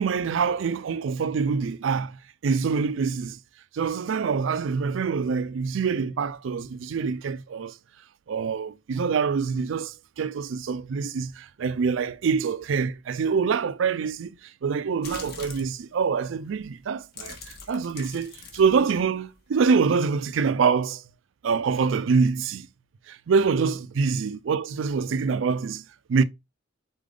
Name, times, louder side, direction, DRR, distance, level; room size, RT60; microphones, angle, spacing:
voice 1, 0.0-2.2 2.4-3.4 3.7-7.7 8.3-14.3 14.6-21.0 21.4-22.7 23.1-26.2, right 5 dB, 75° right, 0.4 m, -25 dB
sound 1, 15.0-15.8 16.5-16.7 17.0-19.5, left 4 dB, 50° left, 1.0 m, -42 dB
4.1 x 3.8 x 3.3 m
head